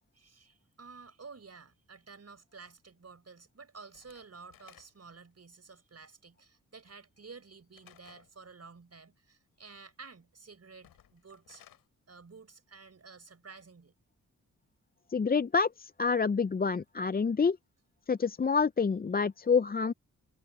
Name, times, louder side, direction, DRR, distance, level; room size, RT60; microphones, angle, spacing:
voice 1, 0.1-11.6 12.1-13.9, right 4 dB, 45° right, 5.0 m, -52 dB
Slam / Wood, 3.9-5.2 7.7-8.3 10.7-11.9, left 10 dB, 90° left, 6.9 m, -59 dB
voice 2, 15.1-17.6 18.1-19.9, left 5 dB, 25° left, 0.6 m, -27 dB
supercardioid pair, 45°, 34 cm